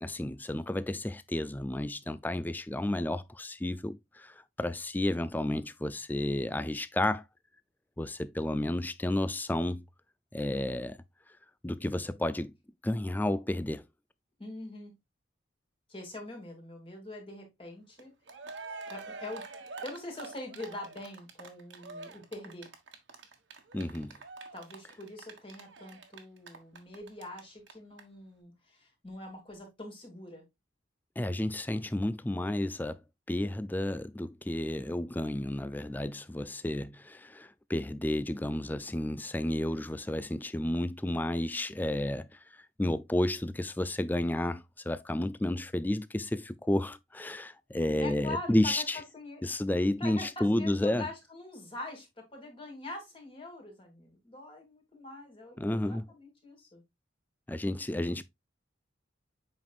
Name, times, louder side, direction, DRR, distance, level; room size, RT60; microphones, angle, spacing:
voice 1, 0.0-7.2 8.0-9.8 10.3-11.0 11.6-12.5 12.8-13.8 23.7-24.2 31.2-33.0 33.3-49.0 49.4-51.1 55.6-56.1 57.5-58.2, left 1 dB, 10° left, 0.3 m, -31 dB
voice 2, 14.4-14.9 15.9-18.1 18.8-19.5 19.8-22.7 24.5-30.4 48.0-48.8 49.1-56.8, left 2 dB, 25° left, 2.5 m, -44 dB
Cheering, 18.0-18.1 18.3-27.4 27.7-27.8 28.0-28.1, right 4 dB, 70° right, 1.4 m, -45 dB
7.8 x 5.3 x 2.4 m
head